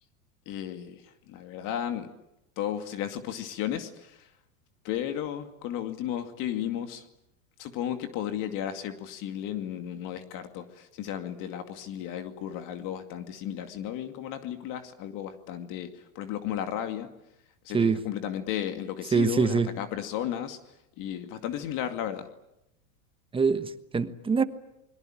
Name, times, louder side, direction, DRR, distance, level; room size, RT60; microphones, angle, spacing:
voice 1, 0.5-2.1 2.6-4.3 4.8-7.0 7.6-17.1 17.6-20.6 21.0-22.3, left 10 dB, 45° left, 8 dB, 2.4 m, -34 dB
voice 2, 19.1-19.7 23.3-24.4, right 5 dB, 10° right, 12 dB, 1.2 m, -24 dB
28.5 x 22.5 x 9.0 m, 0.86 s
supercardioid pair, 135°, 44 cm